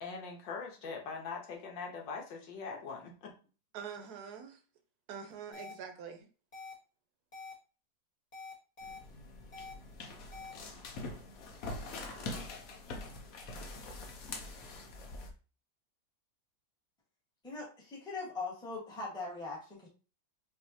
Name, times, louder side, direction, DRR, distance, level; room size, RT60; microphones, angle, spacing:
voice 1, 0.0-3.3, left 5 dB, 75° left, 1.7 m, -42 dB
voice 2, 3.7-4.6 5.1-6.3, right 7 dB, 60° right, 1.2 m, -45 dB
sound 1, 5.5-5.7 6.5-6.7 7.3-7.5 8.3-9.0 9.5-9.7 10.3-10.5, left 4 dB, 25° left, 0.9 m, -46 dB
sound 2, 8.8-15.3, left 2 dB, 60° left, 1.1 m, -44 dB
voice 3, 17.4-19.9, left 3 dB, 5° left, 1.2 m, -41 dB
6.0 x 2.8 x 2.8 m
omnidirectional pair, 2.0 m